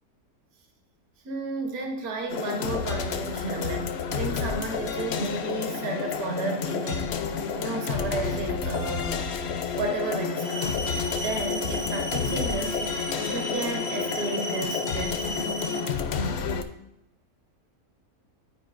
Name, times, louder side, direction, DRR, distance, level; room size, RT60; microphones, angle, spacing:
voice 1, 1.2-10.8 11.2-15.6, right 3 dB, 70° right, 2 dB, 1.5 m, -33 dB
sound 1, 2.3-16.6, left 5 dB, 65° left, 0.6 m, -30 dB
sound 2, 10.4-15.8, left 1 dB, 90° right, 1.5 m, -35 dB
12.5 x 4.6 x 2.5 m, 0.87 s
omnidirectional pair, 1.6 m